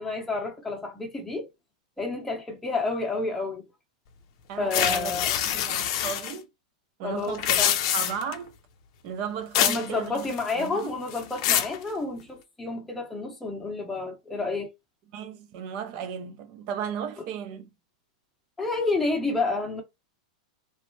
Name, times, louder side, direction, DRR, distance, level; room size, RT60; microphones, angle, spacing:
voice 1, 0.0-1.5 2.0-3.6 4.6-5.4 7.0-7.8 9.6-14.7 18.6-19.8, left 3 dB, 5° left, 0.8 m, -30 dB
voice 2, 4.5-5.1 5.5-6.5 7.0-7.6 7.9-8.5 9.0-11.0 15.1-17.7, right 7 dB, 40° right, 0.6 m, -35 dB
sound 1, 4.7-6.3 7.3-8.3 9.5-9.9 10.2-10.7 11.1-11.8, left 11 dB, 45° left, 0.5 m, -25 dB
3.2 x 2.1 x 3.0 m
supercardioid pair, 160°, 4 cm